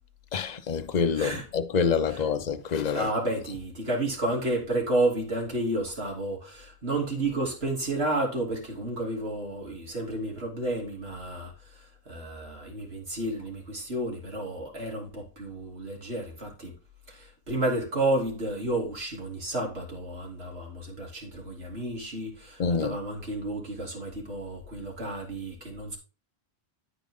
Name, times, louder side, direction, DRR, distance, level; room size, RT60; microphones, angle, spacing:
voice 1, 0.3-3.1 22.6-23.0, left 6 dB, 45° left, 0.8 m, -27 dB
voice 2, 1.1-1.4 2.1-2.3 2.9-16.7 17.1-26.0, right 1 dB, 70° right, 3.1 m, -31 dB
13.0 x 4.7 x 3.7 m
omnidirectional pair, 1.1 m